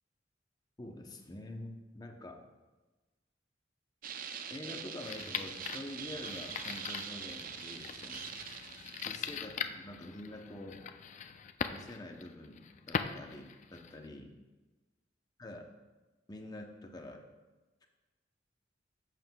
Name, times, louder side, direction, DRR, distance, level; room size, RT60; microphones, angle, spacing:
voice 1, 0.8-2.4 4.5-8.4 9.0-10.8 11.7-14.3 15.4-15.7 16.3-17.2, left 1 dB, 20° left, 3 dB, 0.7 m, -46 dB
sound 1, 4.0-9.1, right 7 dB, 50° right, 0.5 m, -44 dB
sound 2, 5.0-14.1, left 6 dB, 40° left, 0.4 m, -41 dB
11.0 x 7.5 x 2.3 m, 1.2 s
head